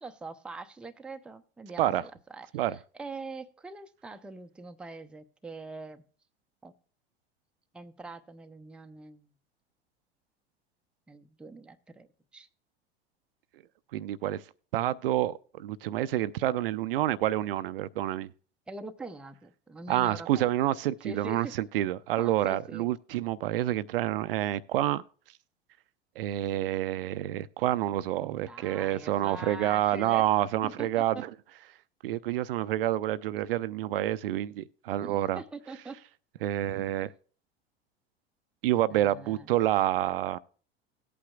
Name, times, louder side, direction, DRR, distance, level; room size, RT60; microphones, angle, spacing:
voice 1, 0.0-2.5 2.7-6.0 6.6-6.7 7.7-9.3 11.1-12.5 18.7-20.5 21.0-21.5 22.2-22.9 28.2-30.3 30.6-31.3 35.0-36.0 38.9-39.5, right 3 dB, 5° right, 0.5 m, -43 dB
voice 2, 13.9-14.4 14.7-18.3 19.9-25.0 26.2-31.3 32.0-35.4 36.4-37.1 38.6-40.4, right 13 dB, 60° right, 0.4 m, -28 dB
17.5 x 8.5 x 2.3 m
figure-of-eight pair, 75°, 32 cm